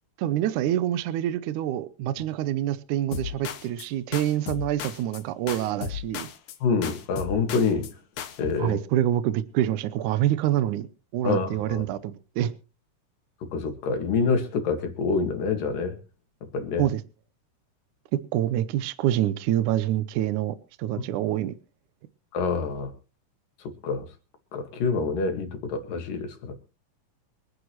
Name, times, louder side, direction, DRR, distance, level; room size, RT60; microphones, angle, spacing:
voice 1, 0.2-6.3 8.6-10.9 11.1-12.5 16.8-17.0 18.1-21.5, right 12 dB, 75° right, 14 dB, 2.1 m, -26 dB
sound 1, 3.1-3.9 4.1-5.2 5.5-6.6 6.8-8.5, left 9 dB, 70° left, 2.5 m, -35 dB
voice 2, 6.6-7.9 8.4-8.8 11.2-11.8 13.5-16.0 16.5-16.8 22.3-22.9 23.8-24.1 24.5-26.5, left 4 dB, 90° left, 5 dB, 3.8 m, -26 dB
25.5 x 9.9 x 3.1 m, 0.33 s
omnidirectional pair, 3.8 m